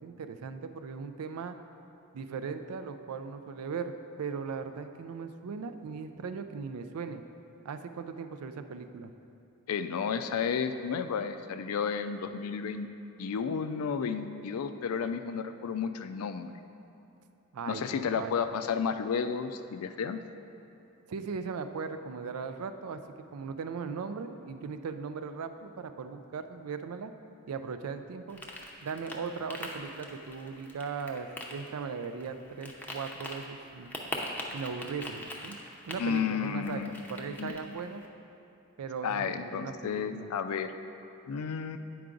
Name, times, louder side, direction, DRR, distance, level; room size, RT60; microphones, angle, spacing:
voice 1, 0.0-1.6 2.1-7.2 7.6-9.1 17.5-18.5 21.1-23.0 23.3-27.1 27.5-28.4 28.8-34.0 34.5-35.6 35.9-38.0 38.8-40.3, right 5 dB, 90° right, 9 dB, 0.4 m, -38 dB
voice 2, 9.7-12.9 13.2-16.5 17.7-20.2 36.0-36.9 37.4-37.5 39.0-40.7 41.3-41.8, left 6 dB, 80° left, 9 dB, 0.4 m, -32 dB
sound 1, 28.3-38.1, left 1 dB, 10° left, 0.6 m, -43 dB
9.3 x 4.7 x 3.8 m, 2.7 s
head